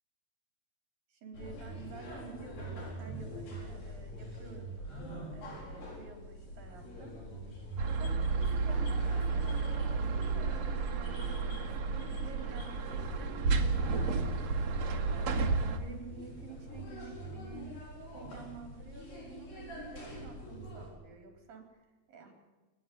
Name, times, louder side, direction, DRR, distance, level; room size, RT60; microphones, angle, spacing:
voice 1, 1.1-7.2 7.9-10.6 10.9-14.3 14.9-17.6 18.1-22.3, right 5 dB, 75° right, 5 dB, 6.1 m, -51 dB
sound 1, 1.3-20.9, right 1 dB, 80° left, 9.1 m, -45 dB
sound 2, 7.5-13.0, left 5 dB, 55° left, 5.6 m, -57 dB
sound 3, 7.8-15.8, right 4 dB, 55° right, 2.6 m, -31 dB
30.0 x 10.0 x 9.6 m, 1.2 s
omnidirectional pair, 4.0 m